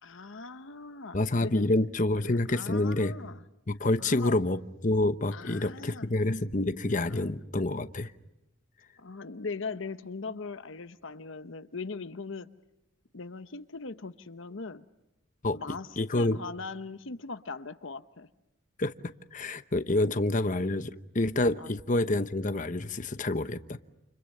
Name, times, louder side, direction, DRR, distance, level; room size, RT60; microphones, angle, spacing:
voice 1, 0.0-1.7 2.3-3.4 4.0-4.4 5.3-6.1 7.0-7.3 9.0-12.5 13.1-14.8 15.5-18.3 21.6-21.7, left 4 dB, 65° left, 0.9 m, -40 dB
voice 2, 1.1-3.1 3.7-8.1 15.4-15.6 16.0-16.4 18.8-18.9 19.3-23.8, left 2 dB, 40° left, 1.0 m, -28 dB
29.5 x 29.0 x 6.6 m
head